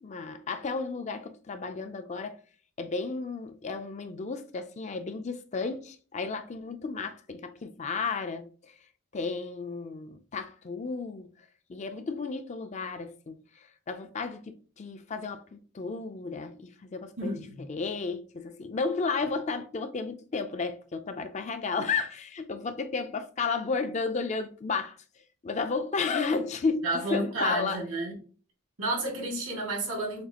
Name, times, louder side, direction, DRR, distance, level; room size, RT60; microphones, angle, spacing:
voice 1, 0.0-2.4 2.8-8.8 9.1-11.3 11.7-17.4 17.7-25.0 25.4-27.8, left 4 dB, 35° left, 0.4 m, -33 dB
voice 2, 17.2-17.6 26.8-28.1 28.8-30.2, right 2 dB, 90° right, 2.1 m, -31 dB
6.5 x 2.4 x 2.8 m
head